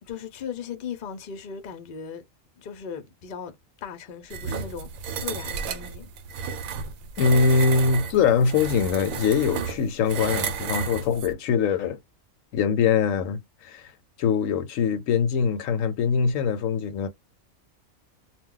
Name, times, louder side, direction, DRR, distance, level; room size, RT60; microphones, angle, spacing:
voice 1, 0.0-2.2 2.6-3.6 3.8-4.9 5.2-6.1, left 7 dB, 50° left, 0.7 m, -37 dB
sound 1, 4.3-11.3, right 6 dB, 85° right, 1.0 m, -32 dB
voice 2, 7.2-12.0 12.5-13.9 14.2-17.1, left 5 dB, 80° left, 1.0 m, -23 dB
2.2 x 2.2 x 3.7 m
omnidirectional pair, 1.4 m